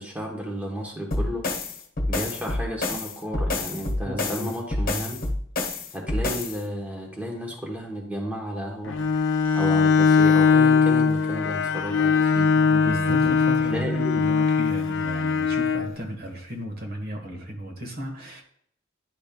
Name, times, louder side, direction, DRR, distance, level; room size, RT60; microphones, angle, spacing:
voice 1, 0.0-1.4 2.1-5.2 5.9-9.0 9.6-12.5 13.7-14.3, equal, 5° right, -1 dB, 1.1 m, -33 dB
sound 1, 1.1-6.6, left 2 dB, 45° left, 1.3 m, -28 dB
voice 2, 4.0-4.5 12.5-13.9 14.2-18.4, equal, 45° right, 2 dB, 1.3 m, -34 dB
Bowed string instrument, 8.9-15.9, left 5 dB, 65° left, 0.5 m, -21 dB
10.5 x 5.3 x 2.3 m, 0.65 s
head